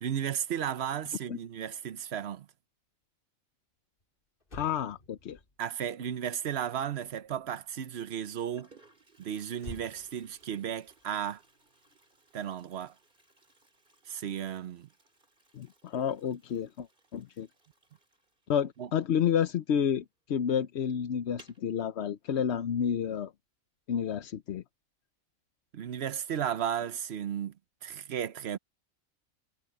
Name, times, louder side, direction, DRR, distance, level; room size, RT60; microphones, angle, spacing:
voice 1, 0.0-2.5 5.6-8.7 9.2-11.4 12.3-12.9 14.1-14.9 18.8-18.9 25.7-27.5 27.8-28.6, right 9 dB, 55° right, 1.0 m, -34 dB
Motor vehicle (road), 4.0-4.1 4.4-7.9 9.6-12.2 12.4-12.7, left 1 dB, 40° left, 3.0 m, -52 dB
voice 2, 4.5-5.4 15.5-16.9 17.1-17.5 18.5-23.3 23.9-24.6, left 8 dB, 60° left, 0.9 m, -30 dB
Toilet flush, 7.1-7.5 8.2-8.3 8.5-19.8 20.1-20.2 20.5-20.6 21.2-21.7, right 2 dB, 35° right, 3.7 m, -63 dB
omnidirectional pair, 1.4 m